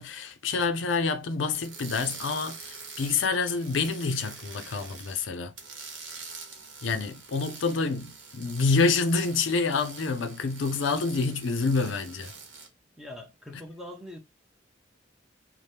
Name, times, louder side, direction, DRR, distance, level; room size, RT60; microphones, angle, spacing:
voice 1, 0.0-5.5 6.8-12.3, left 4 dB, 80° left, 0.5 m, -27 dB
sound 1, 1.5-5.3 5.6-12.7, right 4 dB, 80° right, 0.9 m, -44 dB
voice 2, 13.0-14.2, left 1 dB, ahead, 0.6 m, -43 dB
2.8 x 2.1 x 3.3 m
head